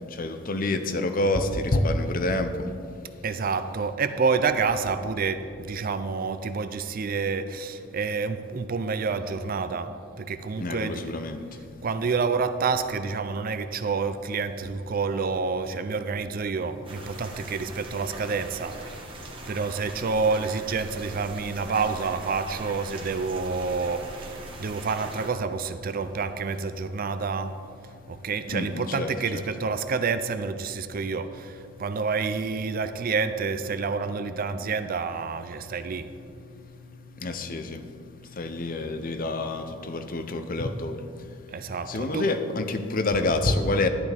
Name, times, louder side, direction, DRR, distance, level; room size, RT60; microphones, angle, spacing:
voice 1, 0.2-2.5 10.6-11.4 28.5-29.4 37.2-37.8 38.4-41.0 41.9-43.9, left 2 dB, 45° left, 8 dB, 0.6 m, -27 dB
voice 2, 3.2-11.1 11.8-18.8 19.5-27.5 28.1-36.1 41.5-42.3, right 4 dB, 45° right, 10 dB, 0.5 m, -28 dB
sound 1, 16.8-25.3, right 2 dB, 25° right, 1.2 m, -41 dB
11.5 x 11.0 x 3.5 m, 2.4 s
head